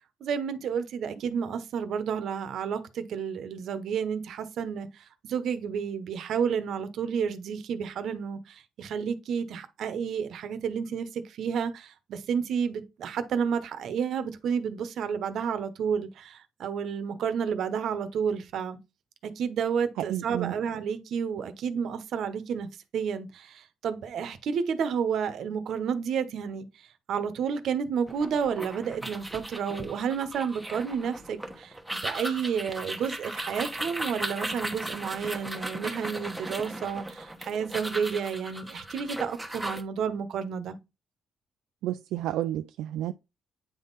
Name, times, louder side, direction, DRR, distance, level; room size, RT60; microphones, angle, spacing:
voice 1, 0.2-18.8 19.2-22.7 22.9-26.7 27.1-40.8, right 7 dB, 65° right, 0.9 m, -31 dB
voice 2, 20.1-20.5 41.8-43.1, right 13 dB, 90° right, 0.3 m, -31 dB
sound 1, 28.1-39.8, right 1 dB, 5° right, 1.0 m, -37 dB
8.7 x 3.6 x 4.0 m
cardioid pair, 105°, 0 cm